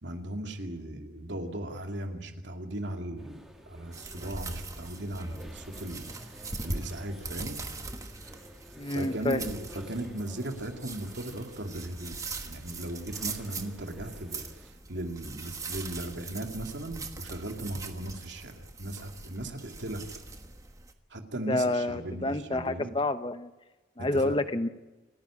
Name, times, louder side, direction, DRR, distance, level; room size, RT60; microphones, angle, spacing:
voice 1, 0.0-6.0 6.6-7.6 8.9-12.1 12.4-20.0 21.1-22.9 24.0-24.4, right 1 dB, 85° right, 4 dB, 2.4 m, -37 dB
sound 1, 3.2-14.7, equal, 5° right, 2.9 m, -51 dB
sound 2, 3.9-20.9, right 3 dB, 20° right, 1.2 m, -41 dB
voice 2, 8.8-9.4 21.5-23.5 24.0-24.7, left 2 dB, 25° left, 11 dB, 0.8 m, -28 dB
29.0 x 10.0 x 10.0 m, 1.1 s
head